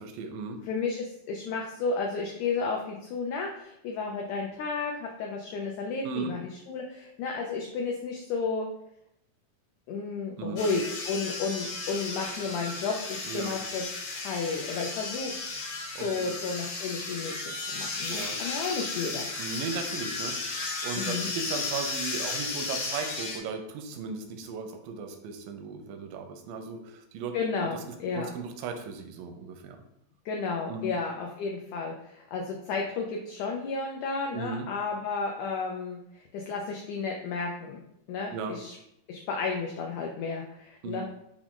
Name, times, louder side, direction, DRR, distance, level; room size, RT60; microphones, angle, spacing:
voice 1, 0.0-0.6 6.0-6.3 10.4-10.6 13.3-13.6 16.0-16.3 18.1-18.4 19.4-27.3 27.6-27.7 28.1-29.8 30.7-30.9 34.3-34.7 38.3-38.6 40.8-41.0, right 5 dB, 85° right, 6 dB, 2.3 m, -36 dB
voice 2, 0.7-8.7 9.9-13.8 14.1-15.3 16.0-19.3 21.0-21.3 27.3-28.3 30.2-37.8 38.1-38.8 39.1-41.0, left 4 dB, 85° left, 0 dB, 1.6 m, -32 dB
sound 1, 10.6-23.4, left 3 dB, 70° left, 2.4 m, -34 dB
6.0 x 2.4 x 3.7 m, 0.78 s
omnidirectional pair, 4.0 m